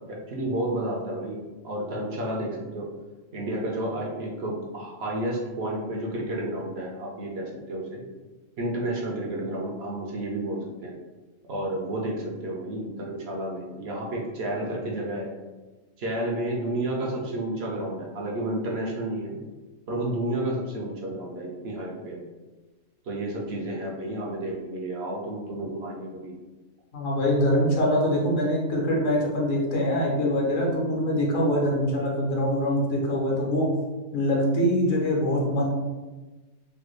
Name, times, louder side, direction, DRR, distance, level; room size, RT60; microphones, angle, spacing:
voice 1, 0.0-2.9 3.3-8.0 8.6-10.9 11.5-15.3 16.0-19.4 19.9-22.2 23.1-26.3, right 1 dB, 60° right, -2 dB, 0.8 m, -31 dB
voice 2, 26.9-33.7 34.1-35.6, equal, 75° left, -2 dB, 1.2 m, -24 dB
3.3 x 2.2 x 3.1 m, 1.2 s
omnidirectional pair, 1.3 m